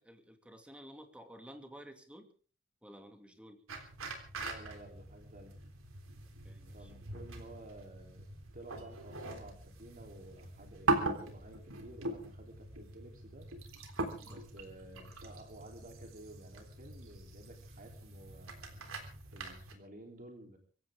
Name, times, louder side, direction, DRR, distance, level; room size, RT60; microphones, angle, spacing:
voice 1, 0.0-2.3 2.8-3.6 6.4-6.9 14.2-14.5, equal, 5° right, 5 dB, 2.6 m, -53 dB
sound 1, 3.7-19.7, right 2 dB, 85° right, 3.6 m, -41 dB
voice 2, 4.4-5.6 6.7-8.3 8.5-13.5 14.2-18.9 19.3-20.6, right 1 dB, 45° right, 3 dB, 3.5 m, -53 dB
25.0 x 15.5 x 3.7 m, 0.39 s
head